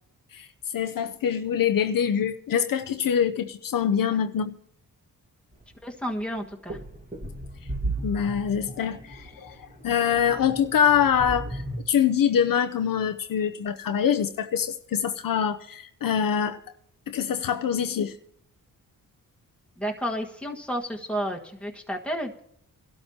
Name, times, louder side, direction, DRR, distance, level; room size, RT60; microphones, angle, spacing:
voice 1, 0.7-4.6 8.0-9.6 9.8-16.6 17.1-18.1, left 8 dB, 65° left, 0.7 m, -24 dB
sound 1, 5.5-5.7 6.2-11.8, right 2 dB, 20° right, 1.8 m, -35 dB
voice 2, 5.8-6.8 19.8-22.4, equal, 5° left, 1.5 m, -31 dB
22.0 x 12.5 x 2.9 m
cardioid pair, 75°, 36 cm